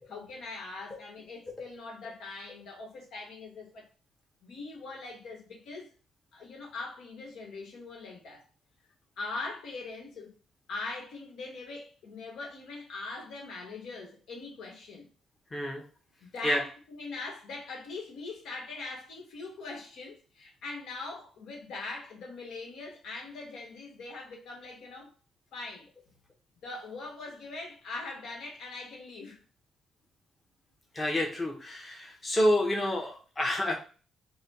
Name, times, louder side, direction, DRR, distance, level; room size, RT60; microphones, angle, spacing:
voice 1, 0.1-3.8 4.4-5.9 6.3-8.5 9.2-10.3 10.7-15.1 16.2-25.1 25.5-25.9 26.6-29.4, left 3 dB, 75° left, 1.3 m, -41 dB
voice 2, 15.5-15.8 16.4-16.6 30.9-33.7, equal, 20° left, 0.9 m, -28 dB
4.1 x 2.2 x 4.0 m
cardioid pair, 135°, 0 cm